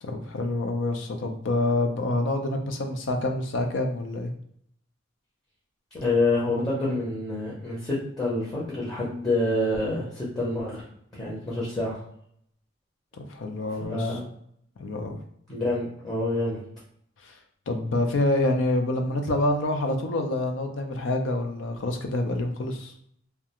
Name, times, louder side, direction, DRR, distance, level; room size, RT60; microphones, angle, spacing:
voice 1, 0.0-4.3 13.1-14.2 14.8-15.2 17.2-17.3 17.7-22.9, left 2 dB, 75° left, 5 dB, 0.4 m, -27 dB
voice 2, 6.0-10.8 11.1-12.0 13.9-14.3 15.5-16.6, left 2 dB, 20° left, -6 dB, 0.6 m, -27 dB
2.3 x 2.2 x 2.8 m, 0.70 s
head